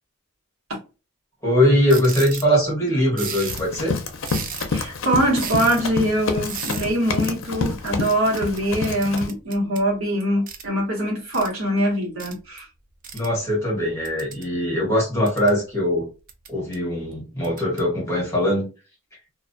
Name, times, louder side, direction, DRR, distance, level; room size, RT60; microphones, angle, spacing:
voice 1, 1.4-4.0 13.1-16.1 16.5-18.7, equal, 15° left, 1.1 m, -21 dB
sound 1, 1.9-2.5 3.2-3.7 4.2-4.8 5.4-5.8 6.5-6.9 7.9-9.9 10.5-10.7 11.3-11.5 12.2-12.3 13.0-13.3 14.0-14.5 15.0-15.6 16.3-16.7 17.4-17.8, right 7 dB, 40° right, 0.4 m, -34 dB
Run, 3.5-9.3, left 4 dB, 65° left, 0.5 m, -28 dB
voice 2, 4.7-12.7, right 1 dB, 70° right, 1.1 m, -23 dB
2.3 x 2.2 x 2.5 m
head